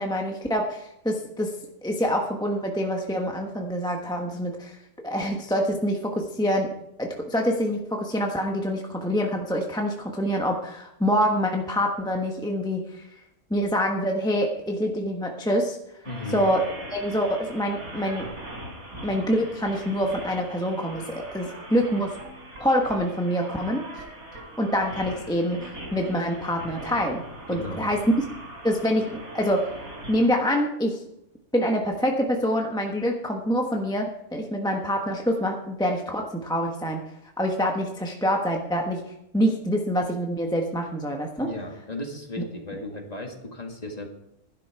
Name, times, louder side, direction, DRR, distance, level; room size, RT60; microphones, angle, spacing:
voice 1, 0.0-1.5 1.8-4.8 5.0-6.7 7.0-13.0 13.5-15.8 16.3-16.6 16.9-18.3 19.0-22.2 22.6-23.8 24.6-27.2 27.5-28.0 28.6-29.7 30.1-31.0 31.5-37.0 37.4-39.0 39.3-41.5, equal, 5° left, 1 dB, 1.0 m, -26 dB
sound 1, 16.0-30.3, right 1 dB, 85° right, 4.1 m, -41 dB
voice 2, 16.1-16.4 27.5-27.9 41.4-44.1, left 2 dB, 30° left, 2 dB, 1.9 m, -35 dB
11.5 x 11.0 x 4.6 m, 0.84 s
omnidirectional pair, 1.5 m